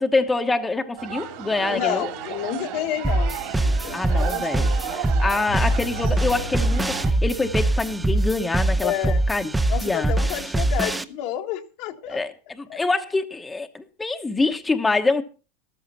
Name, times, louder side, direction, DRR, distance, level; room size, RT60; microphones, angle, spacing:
voice 1, 0.0-2.0 3.9-8.9 9.3-9.5 9.8-10.1 12.1-15.2, left 3 dB, 10° left, 1.1 m, -25 dB
sound 1, 1.0-7.1, right 10 dB, 65° right, 3.5 m, -34 dB
voice 2, 1.7-4.9 8.8-9.2 9.6-12.2 12.7-12.8, left 12 dB, 60° left, 1.5 m, -30 dB
sound 2, 3.0-11.0, right 2 dB, 10° right, 0.8 m, -23 dB
sound 3, 5.5-9.8, left 9 dB, 80° left, 2.6 m, -38 dB
13.5 x 13.0 x 4.2 m
hypercardioid pair, 110°, 0 cm